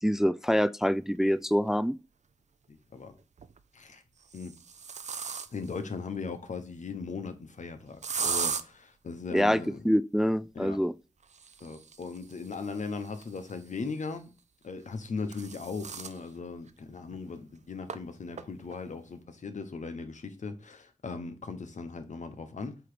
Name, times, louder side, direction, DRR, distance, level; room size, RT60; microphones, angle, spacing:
voice 1, 0.0-2.0 9.3-10.9, equal, 5° right, 0.3 m, -26 dB
sound 1, 1.6-1.7 3.2-3.6 4.2-5.8 8.0-8.6 11.2-13.8 14.9-16.2 16.7-16.8 17.1-17.2 17.9-18.0 18.4-18.8, right 6 dB, 70° right, 0.5 m, -37 dB
voice 2, 2.7-3.1 3.7-4.0 4.3-4.5 5.5-9.8 10.5-10.8 11.6-14.3 14.6-22.8, left 4 dB, 80° left, 1.0 m, -38 dB
7.7 x 3.0 x 5.0 m
cardioid pair, 45°, 12 cm